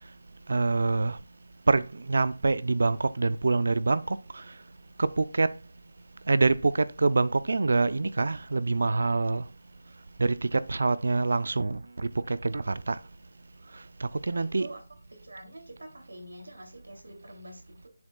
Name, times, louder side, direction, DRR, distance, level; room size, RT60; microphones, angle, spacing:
voice 1, 0.5-1.2 1.7-4.4 5.0-5.5 6.3-9.4 10.2-13.0 14.0-14.7, right 3 dB, 60° right, 0.5 m, -26 dB
voice 2, 14.2-14.8 15.2-17.9, right 1 dB, 90° right, 2.8 m, -46 dB
8.8 x 7.1 x 2.3 m
figure-of-eight pair, 170°, 0 cm